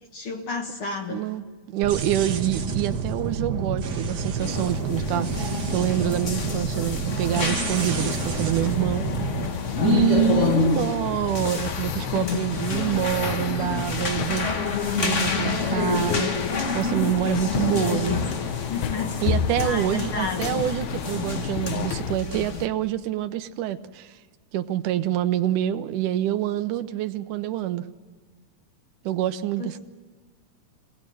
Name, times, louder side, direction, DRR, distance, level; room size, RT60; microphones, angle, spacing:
voice 1, 0.0-1.3 17.3-18.2 18.7-19.2 19.6-20.6 29.6-29.8, left 4 dB, 50° left, 3 dB, 2.0 m, -32 dB
voice 2, 1.1-9.1 9.8-14.6 15.0-16.5 16.7-18.2 19.2-24.1 24.5-27.9 29.0-29.8, right 12 dB, 80° right, 10 dB, 2.3 m, -26 dB
sound 1, 1.8-9.4, right 5 dB, 60° right, 1.1 m, -29 dB
sound 2, 4.4-22.7, left 5 dB, 85° left, 0.6 m, -28 dB
sound 3, 7.9-22.2, left 9 dB, 70° left, 2.0 m, -32 dB
25.5 x 18.0 x 7.7 m, 1.4 s
omnidirectional pair, 3.6 m